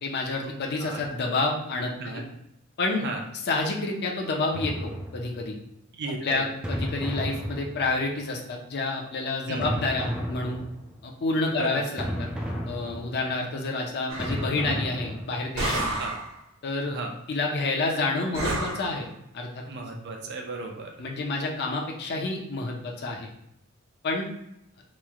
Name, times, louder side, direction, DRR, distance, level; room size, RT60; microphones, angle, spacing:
voice 1, 0.0-2.2 2.8-3.1 3.5-5.6 6.2-10.6 11.0-12.0 12.7-16.0 16.6-17.0 17.3-19.1 19.3-19.6 21.0-23.3 24.0-24.3, left 3 dB, 50° left, 0 dB, 0.5 m, -29 dB
sound 1, 4.5-5.6 6.6-8.2 9.6-11.0 12.0-13.4 14.2-15.6, equal, 5° right, 0.3 m, -33 dB
voice 2, 5.9-6.5 9.5-9.7 11.5-11.8 16.0-16.2 16.8-17.1 19.7-21.0, right 3 dB, 55° right, 2 dB, 0.5 m, -35 dB
sound 2, 14.1-14.5 15.6-16.3 18.3-18.9, right 2 dB, 90° right, 0.8 m, -29 dB
3.0 x 2.1 x 3.5 m, 0.80 s
head